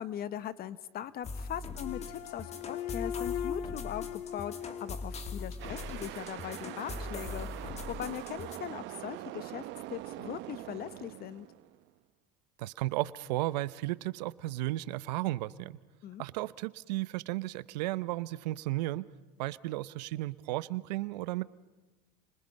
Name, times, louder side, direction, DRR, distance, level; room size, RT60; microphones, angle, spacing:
voice 1, 0.0-9.6 9.9-11.5 16.0-16.2, left 10 dB, 45° left, 15 dB, 1.0 m, -40 dB
sound 1, 1.2-8.6, left 4 dB, 30° left, 2.6 m, -41 dB
sound 2, 1.8-6.1, left 9 dB, 70° left, 1.5 m, -40 dB
sound 3, 5.6-11.9, right 16 dB, 60° right, 1.0 m, -43 dB
voice 2, 12.6-15.8 16.2-19.1 19.4-21.4, right 17 dB, 90° right, 18 dB, 0.8 m, -34 dB
30.0 x 26.0 x 5.4 m, 1.2 s
supercardioid pair, 100°, 21 cm